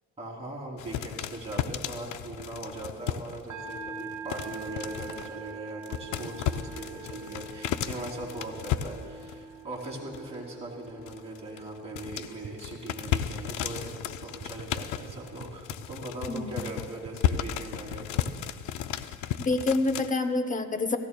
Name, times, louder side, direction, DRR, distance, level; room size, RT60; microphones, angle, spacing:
voice 1, 0.2-13.9 14.2-18.2, right 2 dB, 20° right, -4 dB, 3.1 m, -40 dB
sound 1, 0.8-3.4 3.7-5.5 5.8-9.5 9.8-10.4 10.6-20.1, left 10 dB, 90° left, 0.5 m, -34 dB
sound 2, 3.5-14.9, right 4 dB, 80° right, 1.3 m, -45 dB
sound 3, 12.4-12.5 12.7-12.8 13.1-13.3 13.7-14.0 14.4-14.6 15.1-15.2 15.4-15.5 15.7-16.0 16.4-16.6 17.0-17.3, right 9 dB, 55° right, 2.1 m, -44 dB
voice 2, 16.3-16.6 19.4-21.0, left 3 dB, 25° left, 9 dB, 0.8 m, -27 dB
17.5 x 15.0 x 2.3 m, 2.2 s
cardioid pair, 90°, 30 cm